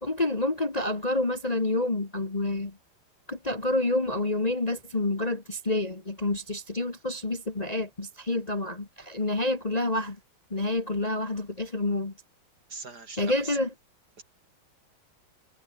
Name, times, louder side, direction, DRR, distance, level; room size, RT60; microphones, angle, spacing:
voice 1, 0.0-2.8 3.3-10.2 10.5-12.1 13.2-13.7, left 2 dB, 20° left, 1.7 m, -28 dB
voice 2, 12.7-13.6 14.2-14.3, right 4 dB, 50° right, 4.0 m, -41 dB
omnidirectional pair, 2.2 m